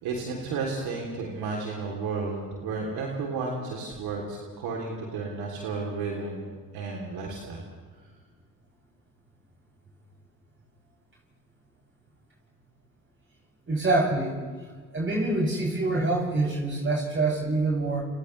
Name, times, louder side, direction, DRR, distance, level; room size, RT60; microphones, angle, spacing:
voice 1, 0.0-6.4 6.7-7.6, right 4 dB, 70° right, -1 dB, 3.3 m, -32 dB
voice 2, 13.7-14.4 14.9-18.0, right 2 dB, 30° right, -4 dB, 7.6 m, -25 dB
30.0 x 29.0 x 3.3 m, 1.5 s
hypercardioid pair, 55°, 39 cm